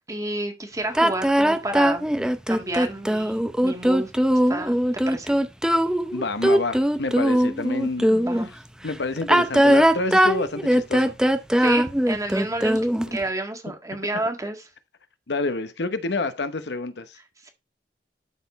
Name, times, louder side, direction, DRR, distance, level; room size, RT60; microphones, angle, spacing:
voice 1, 0.1-2.1 2.5-4.1 4.5-4.7 5.1-5.3 8.1-8.5 11.6-12.8 13.1-14.6, right 1 dB, 20° right, 1.7 m, -30 dB
sound 1, 0.9-8.5 9.2-13.2, equal, 5° right, 0.6 m, -20 dB
voice 2, 6.1-8.1 8.8-11.2 15.3-17.2, left 3 dB, 75° left, 0.9 m, -28 dB
12.0 x 4.3 x 4.1 m
head